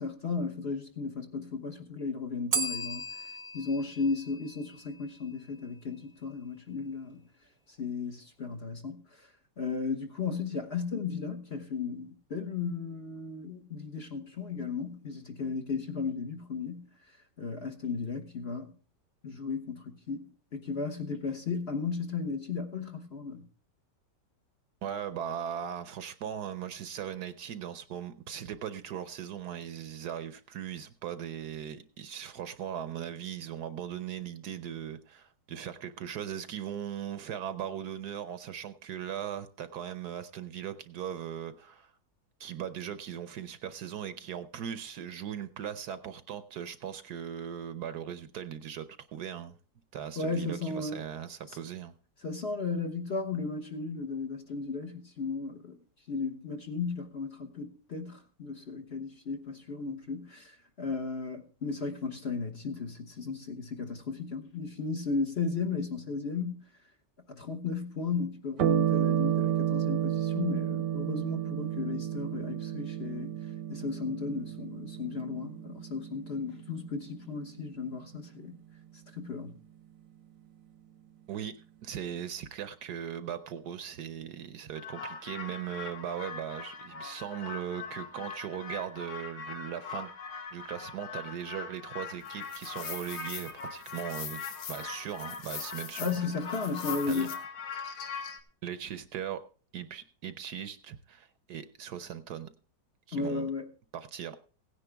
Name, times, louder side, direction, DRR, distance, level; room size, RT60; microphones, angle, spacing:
voice 1, 0.0-3.1 3.5-7.2 7.8-9.0 9.6-16.9 17.4-18.7 19.2-23.4 50.2-51.0 52.2-55.8 56.1-66.6 67.3-73.3 73.7-78.5 79.1-79.6 96.0-97.3 103.1-103.7, left 4 dB, 40° left, 1.3 m, -35 dB
Bell, 2.5-5.3, right 3 dB, 30° right, 0.9 m, -36 dB
voice 2, 24.8-41.9 42.4-49.6 49.9-51.9 81.3-81.5 81.8-90.1 90.5-96.2 96.5-96.7 97.1-97.3 98.6-99.4 99.7-102.5 103.1-103.5 103.9-104.4, right 9 dB, 65° right, 1.2 m, -39 dB
sound 1, 68.6-77.4, right 10 dB, 80° right, 1.6 m, -31 dB
sound 2, 84.7-98.4, left 6 dB, 90° left, 1.9 m, -40 dB
16.5 x 9.9 x 3.4 m
omnidirectional pair, 1.9 m